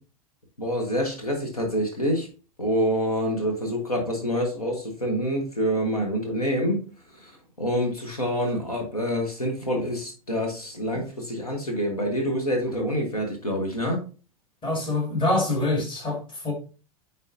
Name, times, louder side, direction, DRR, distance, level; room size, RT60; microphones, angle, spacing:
voice 1, 0.6-2.3 2.6-6.8 7.1-14.0, equal, 85° left, 1.3 m, -27 dB
voice 2, 14.6-16.5, left 2 dB, 25° left, 2.1 m, -25 dB
9.3 x 4.1 x 2.6 m
figure-of-eight pair, 85°, 19 cm